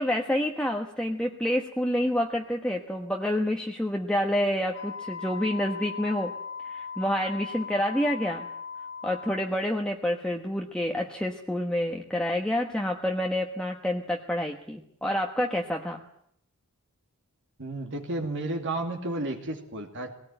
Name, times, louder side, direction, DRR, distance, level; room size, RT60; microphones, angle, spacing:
voice 1, 0.0-6.3 6.6-8.5 9.0-16.0, left 1 dB, 5° left, 1 dB, 1.3 m, -28 dB
Wind instrument woodwind instrument, 4.7-9.5, left 6 dB, 60° left, 2.5 m, -38 dB
voice 2, 17.6-20.1, right 2 dB, 55° right, 2 dB, 2.5 m, -32 dB
20.0 x 18.0 x 9.0 m, 0.74 s
head